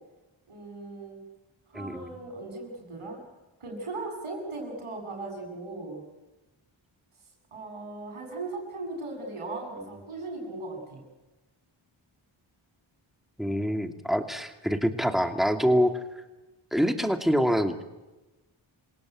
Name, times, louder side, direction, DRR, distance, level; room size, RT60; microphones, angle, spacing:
voice 1, 0.5-1.2 1.7-3.2 3.6-6.0 7.5-11.0, right 2 dB, 80° right, 1 dB, 7.3 m, -38 dB
voice 2, 1.7-2.1 13.4-16.0 16.7-18.0, equal, ahead, 6 dB, 2.6 m, -26 dB
27.5 x 17.5 x 9.3 m, 1.1 s
cardioid pair, 45°, 50 cm